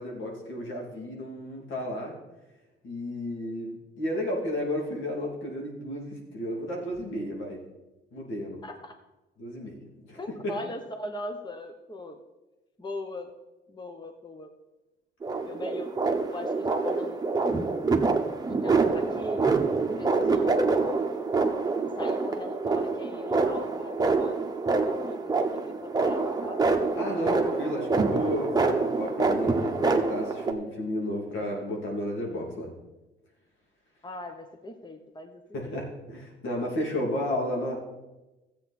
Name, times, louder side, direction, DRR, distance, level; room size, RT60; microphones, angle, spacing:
voice 1, 0.0-2.1 2.8-7.6 8.1-8.6 9.4-9.8 10.0-10.5 27.0-32.7 35.5-37.8, equal, 75° left, 0 dB, 2.8 m, -32 dB
voice 2, 8.6-8.9 10.2-12.2 12.8-13.3 13.7-14.5 15.4-15.9 16.3-18.1 18.5-19.5 20.0-21.0 22.0-24.4 24.9-26.6 34.0-35.8, left 2 dB, 20° left, 5 dB, 1.1 m, -40 dB
sound 1, 15.2-30.5, right 4 dB, 20° right, 1.2 m, -26 dB
13.5 x 8.3 x 4.3 m, 1.0 s
cardioid pair, 90°, 20 cm